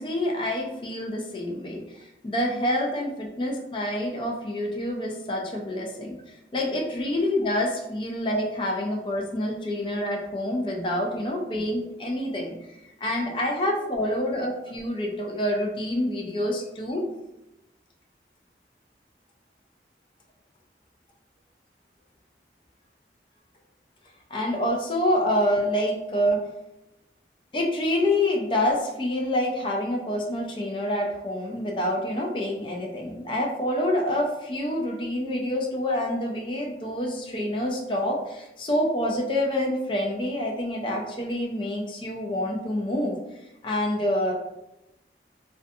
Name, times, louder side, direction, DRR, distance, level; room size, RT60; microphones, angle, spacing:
voice 1, 0.0-12.6 13.0-17.0 24.3-26.4 27.5-43.2 43.6-44.3, left 1 dB, 30° left, 0 dB, 0.4 m, -27 dB
2.4 x 2.2 x 2.6 m, 0.91 s
head